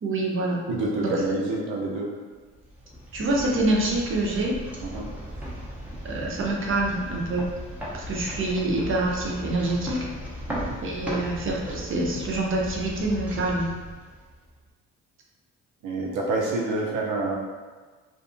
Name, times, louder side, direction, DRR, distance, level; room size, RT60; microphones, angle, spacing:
voice 1, 0.0-0.6 1.0-1.1 3.1-4.6 6.0-7.5 7.9-10.1 10.8-13.7, right 2 dB, 45° right, -2 dB, 0.6 m, -26 dB
voice 2, 0.7-2.1 4.8-5.1 10.5-10.8 15.8-17.4, right 2 dB, 90° right, -3 dB, 0.7 m, -27 dB
sound 1, 2.5-14.6, equal, 5° right, 0.7 m, -37 dB
2.6 x 2.4 x 2.5 m, 1.4 s
cardioid pair, 90°, 30 cm